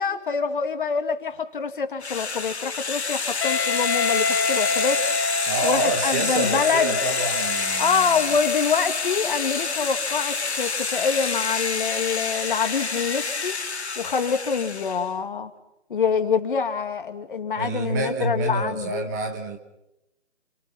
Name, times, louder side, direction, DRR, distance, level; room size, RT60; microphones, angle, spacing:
voice 1, 0.0-5.0 5.6-7.0 7.8-13.6 14.0-15.5 15.9-19.1, left 6 dB, 45° left, 8 dB, 2.4 m, -25 dB
sound 1, 2.0-15.1, left 4 dB, 65° left, 2.8 m, -28 dB
Wind instrument woodwind instrument, 3.4-8.4, left 4 dB, 20° left, 0.9 m, -27 dB
voice 2, 5.5-8.2 17.6-19.6, right 2 dB, 15° right, 6 dB, 1.3 m, -28 dB
29.5 x 24.5 x 5.8 m, 0.85 s
figure-of-eight pair, 160°, 36 cm